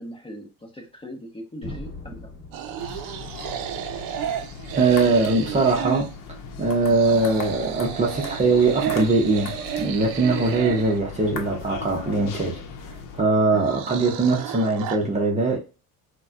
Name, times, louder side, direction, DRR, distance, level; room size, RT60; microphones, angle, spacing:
voice 1, 0.0-2.3, equal, 15° left, 0.8 m, -40 dB
sound 1, 1.6-5.6, left 2 dB, 35° left, 1.4 m, -42 dB
sound 2, 2.5-6.2 6.8-11.0 13.5-15.0, right 9 dB, 60° right, 0.5 m, -32 dB
sound 3, 2.8-13.2, left 5 dB, 65° left, 0.8 m, -38 dB
voice 2, 4.7-6.1 6.6-12.6 13.1-15.6, right 3 dB, 20° right, 0.7 m, -21 dB
4.1 x 2.2 x 2.4 m
cardioid pair, 125°, 36 cm